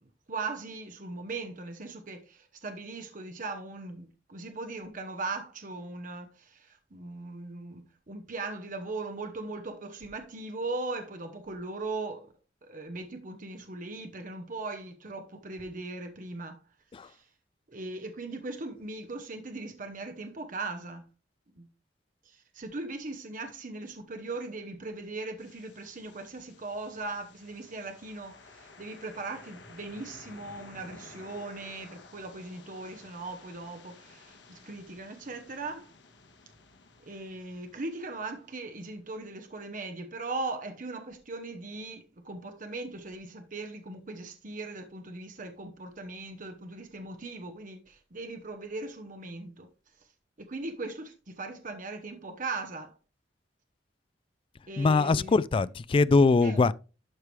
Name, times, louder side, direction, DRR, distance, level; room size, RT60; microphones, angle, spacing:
voice 1, 0.3-12.3 12.6-16.6 17.0-17.2 17.7-21.0 21.6-21.7 22.3-35.9 37.1-49.7 50.5-52.9 54.7-55.3 56.4-56.6, right 3 dB, 45° right, 1.0 m, -39 dB
sound 1, 25.4-39.3, left 3 dB, 85° left, 1.5 m, -54 dB
voice 2, 54.8-56.7, left 3 dB, 30° left, 0.3 m, -22 dB
12.0 x 4.8 x 3.3 m
head